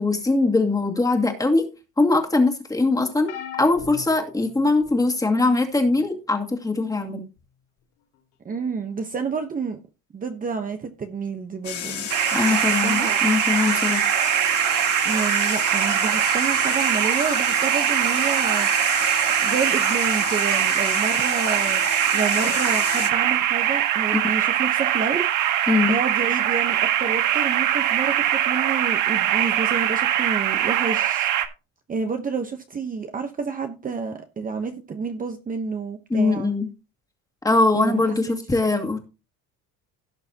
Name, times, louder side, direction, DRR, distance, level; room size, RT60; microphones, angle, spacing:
voice 1, 0.0-1.7 2.0-3.3 3.6-7.2 12.3-14.1 25.7-26.0 36.1-36.7 37.4-39.0, left 3 dB, 10° left, 2.3 m, -21 dB
sound 1, 3.3-5.1 5.8-6.1 7.4-7.5, left 9 dB, 80° left, 4.5 m, -39 dB
voice 2, 8.4-9.8 10.1-13.2 15.0-18.7 19.4-21.8 22.1-25.2 25.9-31.3 31.9-36.5 37.7-38.4, right 5 dB, 25° right, 1.0 m, -29 dB
sound 2, 11.6-23.1, left 9 dB, 45° left, 2.0 m, -31 dB
sound 3, 12.1-31.5, right 11 dB, 65° right, 1.5 m, -22 dB
17.0 x 6.8 x 2.9 m
cardioid pair, 145°, 34 cm